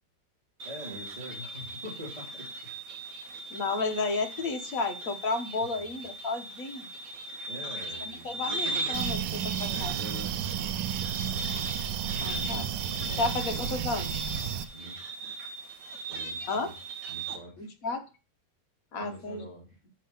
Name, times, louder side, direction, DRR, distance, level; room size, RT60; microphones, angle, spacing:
voice 1, 0.6-2.6 5.8-5.9 7.5-8.4 9.7-10.8 12.2-12.7 12.9-13.6 14.7-15.0 16.1-16.7 17.1-17.7 19.0-19.7, equal, 25° right, -5 dB, 2.8 m, -44 dB
sound 1, 0.6-17.4, right 2 dB, 55° right, 1.5 m, -38 dB
voice 2, 3.5-6.9 8.0-10.1 12.2-12.7 13.2-14.2 16.5-16.7 17.6-18.0 18.9-19.5, left 3 dB, 55° left, 5 dB, 1.5 m, -32 dB
sound 2, 8.9-14.7, right 9 dB, 90° right, 1.3 m, -32 dB
6.6 x 6.5 x 5.5 m, 0.32 s
omnidirectional pair, 1.9 m